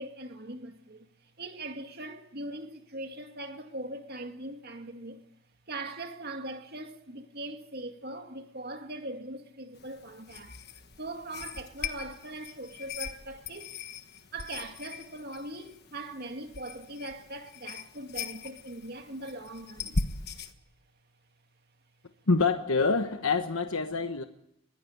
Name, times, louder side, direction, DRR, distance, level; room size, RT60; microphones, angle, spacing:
voice 1, 0.0-5.2 5.7-10.6 11.0-13.8 14.3-20.0, right 2 dB, 45° right, 2.2 m, -41 dB
sound 1, 9.7-20.5, left 4 dB, 50° left, 1.3 m, -40 dB
voice 2, 22.3-24.2, left 4 dB, 75° left, 1.2 m, -26 dB
21.5 x 16.0 x 8.5 m
head